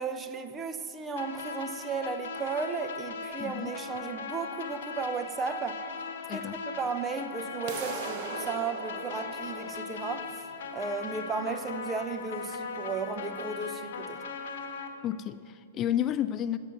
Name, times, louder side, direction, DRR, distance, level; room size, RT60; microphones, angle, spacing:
voice 1, 0.0-5.8 6.3-10.3 10.7-14.2, right 5 dB, 20° right, 0.6 m, -34 dB
sound 1, 1.2-14.9, left 5 dB, 65° left, 1.3 m, -39 dB
voice 2, 3.4-3.7 6.3-6.6 15.0-16.6, left 11 dB, 30° left, 0.3 m, -31 dB
sound 2, 7.7-13.6, right 6 dB, 45° right, 1.0 m, -42 dB
10.0 x 6.8 x 7.5 m
hypercardioid pair, 125°, 0 cm